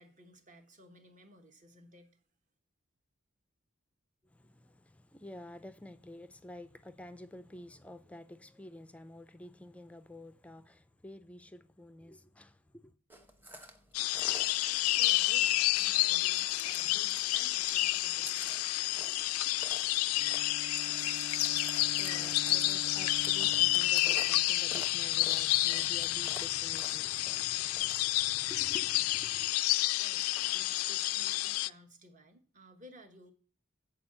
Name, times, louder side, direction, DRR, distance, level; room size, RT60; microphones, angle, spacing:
voice 1, 0.0-2.2 15.0-19.1 30.0-33.3, right 1 dB, 40° right, 1.1 m, -57 dB
voice 2, 4.2-13.0 21.7-29.5, left 1 dB, 5° left, 0.4 m, -50 dB
Chewing mastication, 13.1-28.0, right 1 dB, 10° right, 0.9 m, -50 dB
sound 1, 13.9-31.7, left 18 dB, 85° left, 0.3 m, -30 dB
Bowed string instrument, 20.1-24.8, right 2 dB, 70° right, 0.8 m, -47 dB
7.9 x 4.8 x 7.3 m
head